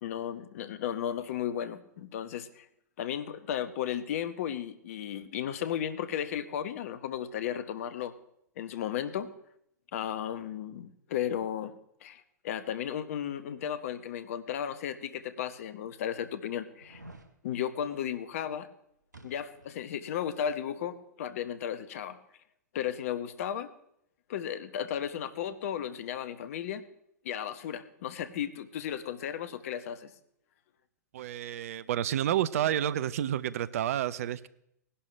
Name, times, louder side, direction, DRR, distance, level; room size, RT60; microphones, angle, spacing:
voice 1, 0.0-2.7 3.0-8.1 8.6-9.3 9.9-11.7 12.0-17.0 17.4-18.7 19.2-22.2 22.7-23.7 24.3-26.9 27.2-30.1, left 9 dB, 55° left, 12 dB, 0.9 m, -34 dB
sound 1, 16.8-17.3 19.1-19.8 20.1-20.2, right 1 dB, 85° right, 1.3 m, -51 dB
voice 2, 31.1-34.5, right 11 dB, 55° right, 18 dB, 0.6 m, -30 dB
19.0 x 11.0 x 3.3 m, 0.73 s
figure-of-eight pair, 105°, 9 cm